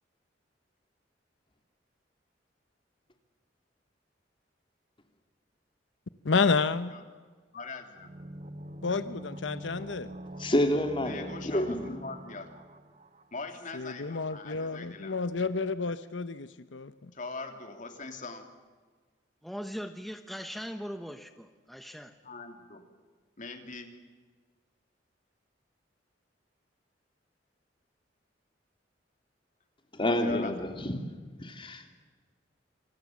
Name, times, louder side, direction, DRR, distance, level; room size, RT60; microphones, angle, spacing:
voice 1, 6.2-6.9 8.8-10.1 13.7-17.1, left 4 dB, 85° left, 12 dB, 0.9 m, -30 dB
voice 2, 7.5-8.1 11.0-12.6 13.3-15.2 17.1-18.5 22.2-22.9 23.4-24.0 30.0-30.9, left 3 dB, 45° left, 5 dB, 3.1 m, -42 dB
sound 1, 8.0-13.7 13.9-14.0, equal, 40° right, 1.1 m, -44 dB
voice 3, 10.4-11.9 29.9-31.0 31.4-31.9, left 1 dB, 30° left, 5 dB, 3.1 m, -29 dB
voice 4, 19.4-22.2, equal, ahead, 7 dB, 1.0 m, -40 dB
27.5 x 26.0 x 7.4 m, 1.5 s
head